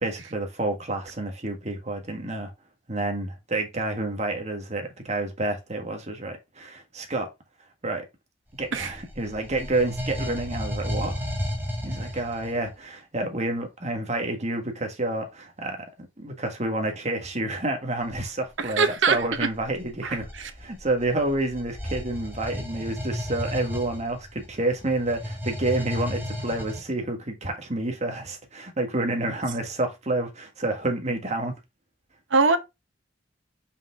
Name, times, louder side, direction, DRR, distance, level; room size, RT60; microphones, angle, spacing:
voice 1, 0.0-2.5 2.9-7.3 7.8-8.0 8.6-11.2 11.8-15.9 16.2-31.5, right 2 dB, 40° right, 1.6 m, -29 dB
sound 1, 8.6-12.7 18.0-18.2 19.0-26.8, equal, 10° right, 1.9 m, -34 dB
voice 2, 18.6-19.5 20.0-20.2 32.3-32.6, right 4 dB, 90° right, 1.0 m, -22 dB
5.8 x 5.2 x 3.6 m
head